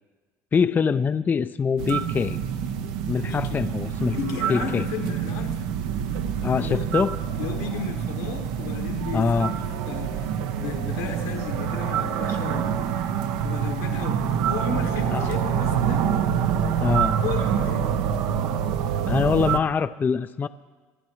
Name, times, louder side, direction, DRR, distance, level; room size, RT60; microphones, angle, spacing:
voice 1, 0.5-2.4 3.1-4.2 4.5-4.9 6.4-7.2 9.1-9.5 15.1-15.3 16.8-17.2 19.1-20.5, left 5 dB, 25° left, 12 dB, 0.3 m, -24 dB
sound 1, 1.8-19.6, right 8 dB, 75° right, 0.7 m, -26 dB
voice 2, 3.2-3.7 4.1-5.6 6.6-6.9 7.4-12.7 13.4-16.1 17.2-17.9, left 6 dB, 85° left, 3 dB, 1.7 m, -34 dB
25.5 x 10.5 x 3.1 m, 1.3 s
supercardioid pair, 90°, 7 cm